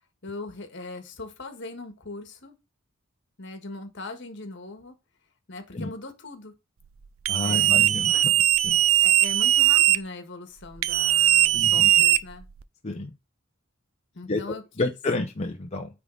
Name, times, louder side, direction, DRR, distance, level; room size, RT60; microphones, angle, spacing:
voice 1, 0.2-2.6 3.4-4.9 5.5-6.5 7.4-7.8 9.0-12.5 14.1-14.9, left 3 dB, 60° left, 1.5 m, -40 dB
voice 2, 7.3-8.3 8.6-8.8 11.5-11.9 12.8-13.1 14.3-14.4 14.8-15.9, left 2 dB, 30° left, 0.7 m, -29 dB
sound 1, 7.3-10.0 10.8-12.6, right 13 dB, 75° right, 0.5 m, -20 dB
9.4 x 3.6 x 3.8 m
head